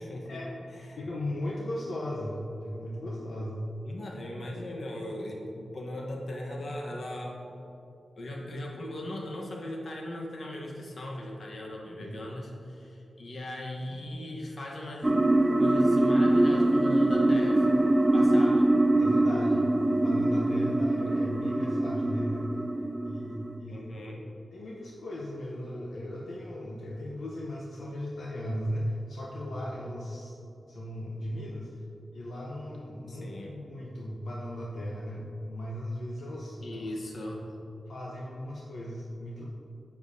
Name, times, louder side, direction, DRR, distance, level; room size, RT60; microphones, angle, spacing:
voice 1, 0.0-0.4 0.7-1.0 3.8-7.4 8.2-15.1 15.6-17.8 18.1-18.7 23.7-24.2 33.1-33.6 36.6-37.5, left 1 dB, 55° left, -1 dB, 1.1 m, -38 dB
voice 2, 1.0-3.7 11.9-12.2 19.0-22.6 23.0-23.9 24.5-30.3 30.7-31.8 32.1-36.6 36.9-37.0 37.9-39.4, equal, 75° left, -3 dB, 0.8 m, -37 dB
sound 1, 15.0-23.6, right 1 dB, 15° right, 0.3 m, -24 dB
9.7 x 7.0 x 2.7 m, 2.8 s
wide cardioid pair, 170°, 0 cm